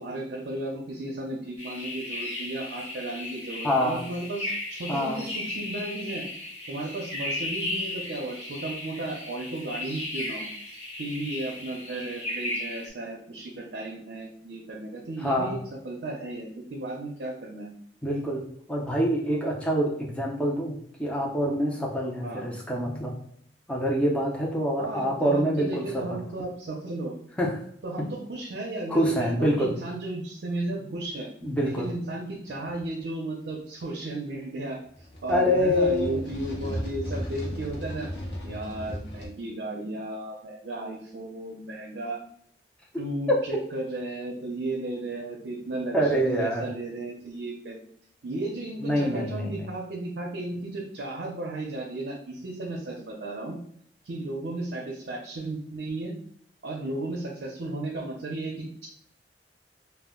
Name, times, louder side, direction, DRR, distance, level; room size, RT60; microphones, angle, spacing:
voice 1, 0.0-6.2 6.7-10.5 11.0-15.6 15.8-17.7 22.2-22.5 24.8-27.2 27.8-31.3 31.6-34.8 35.2-38.1 38.4-42.2 43.0-47.8 48.2-53.6 54.0-56.1 56.6-58.9, right 2 dB, 70° right, -1 dB, 0.5 m, -34 dB
sound 1, 1.6-12.9, left 1 dB, 35° left, 1.3 m, -35 dB
voice 2, 3.6-4.0 4.9-5.2 15.2-15.6 18.0-23.2 23.7-26.2 27.4-27.6 28.0-28.1 28.9-29.7 31.4-31.9 35.3-36.2 43.3-43.4 45.9-46.7 48.8-49.6, equal, 5° left, -3 dB, 0.5 m, -26 dB
sound 2, 31.7-31.9 32.6-32.8 34.9-39.3, equal, 65° left, 0.6 m, -36 dB
2.2 x 2.1 x 3.5 m, 0.65 s
head